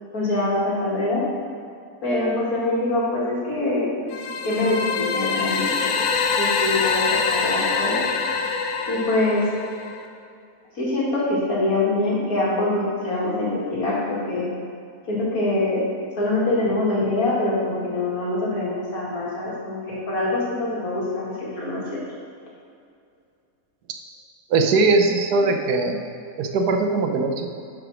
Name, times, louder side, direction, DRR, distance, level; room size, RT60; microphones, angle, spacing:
voice 1, 0.1-1.2 2.0-4.1 4.4-6.0 6.4-8.0 8.9-9.4 10.8-14.5 15.1-15.8 16.2-22.0, left 2 dB, 60° left, -6 dB, 2.6 m, -24 dB
sound 1, 4.1-10.0, left 5 dB, 90° left, 1.4 m, -24 dB
voice 2, 24.5-26.0 26.4-27.5, right 3 dB, 75° right, 5 dB, 1.3 m, -20 dB
9.6 x 5.0 x 6.1 m, 2.4 s
omnidirectional pair, 1.7 m